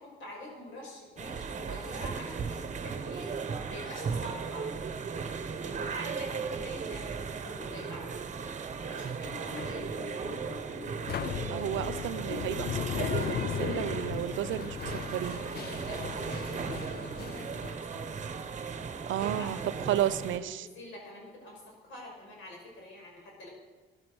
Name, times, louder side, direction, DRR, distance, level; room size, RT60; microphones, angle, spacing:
voice 1, 0.0-4.8 5.6-8.3 8.8-9.9 15.8-18.3 19.0-20.1 20.3-23.5, left 1 dB, 80° left, -1 dB, 5.8 m, -47 dB
sound 1, 1.2-20.4, right 5 dB, 35° right, 1.2 m, -36 dB
sound 2, 9.3-17.7, left 10 dB, 50° left, 0.5 m, -37 dB
voice 2, 11.5-15.4 19.1-19.6 19.9-20.7, right 12 dB, 75° right, 15 dB, 0.7 m, -32 dB
14.0 x 11.0 x 6.4 m, 1.3 s
cardioid pair, 90°, 20 cm